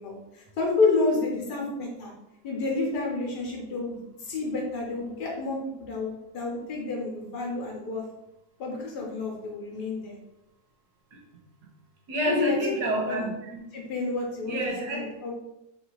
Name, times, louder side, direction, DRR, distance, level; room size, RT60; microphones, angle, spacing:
voice 1, 0.0-2.1 2.4-8.0 8.6-10.2 12.2-12.7 13.1-13.2 13.7-14.6 14.9-15.3, left 3 dB, 75° left, -1 dB, 1.7 m, -29 dB
voice 2, 12.1-13.6 14.4-15.1, equal, 75° right, -1 dB, 1.7 m, -28 dB
3.9 x 2.8 x 4.7 m, 0.90 s
omnidirectional pair, 1.7 m